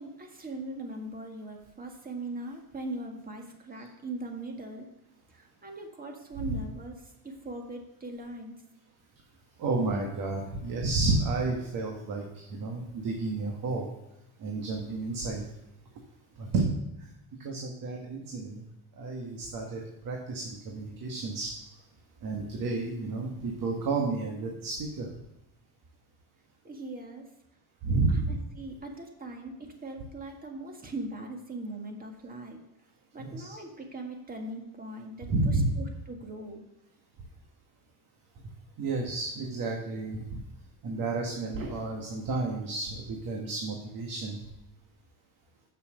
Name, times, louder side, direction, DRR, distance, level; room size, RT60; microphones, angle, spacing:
voice 1, 0.0-4.9 5.3-8.6 26.6-27.3 28.1-32.6 33.1-36.6, right 2 dB, 20° right, 3 dB, 1.8 m, -40 dB
voice 2, 9.6-13.9 14.4-15.4 16.4-16.6 17.4-18.6 19.0-21.5 22.2-25.1 27.8-28.3 33.2-33.6 35.3-35.7 38.8-40.3 40.8-44.4, right 3 dB, 50° right, 1 dB, 1.7 m, -31 dB
7.5 x 6.9 x 6.4 m, 0.90 s
cardioid pair, 115°, 41 cm